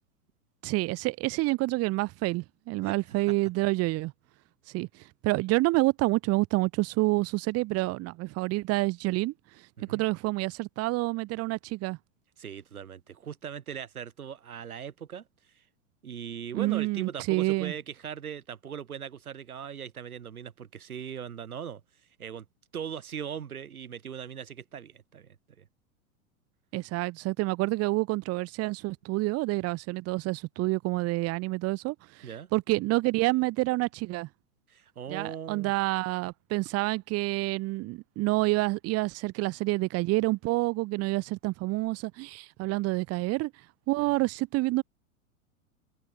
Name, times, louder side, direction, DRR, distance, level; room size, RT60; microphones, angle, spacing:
voice 1, 0.6-4.1 4.7-4.9 5.2-9.3 9.9-12.0 16.5-17.7 26.7-34.3 35.1-43.5 43.9-44.8, right 21 dB, 35° right, 1.1 m, -28 dB
voice 2, 12.4-15.3 15.5-15.6 16.0-21.8 22.2-22.5 22.7-25.7 32.2-32.5 34.7-35.7 44.0-44.1, right 8 dB, 80° right, 3.6 m, -39 dB
hypercardioid pair, 100°, 43 cm